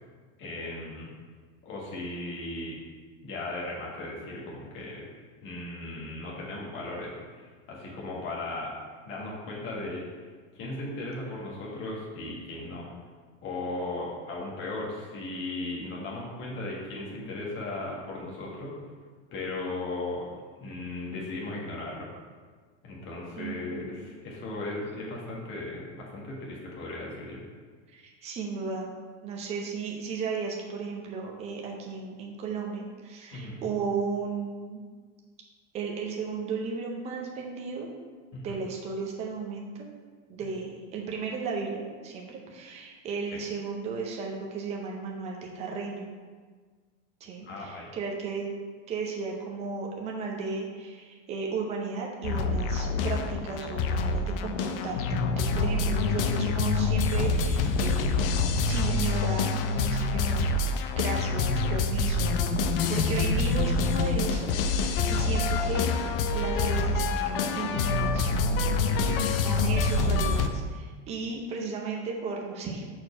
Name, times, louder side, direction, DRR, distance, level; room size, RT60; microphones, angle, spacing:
voice 1, 0.4-1.1 1.6-2.8 3.2-5.1 5.4-8.8 9.0-10.0 10.5-12.9 13.4-18.8 19.3-20.3 20.6-22.1 22.8-27.4 33.3-33.7 38.3-38.5 47.4-47.9 62.9-63.3 68.8-69.8, left 2 dB, 30° left, -4 dB, 1.5 m, -37 dB
voice 2, 23.3-24.0 27.9-28.9 29.2-34.8 35.7-37.9 38.4-39.9 40.3-46.1 47.2-48.5 48.9-58.2 58.7-62.3 62.9-65.9 66.3-68.3 69.4-72.8, right 4 dB, 15° right, 0 dB, 0.6 m, -35 dB
sound 1, 52.2-70.5, left 3 dB, 50° left, 0.4 m, -26 dB
4.7 x 4.4 x 5.9 m, 1.5 s
supercardioid pair, 170°, 38 cm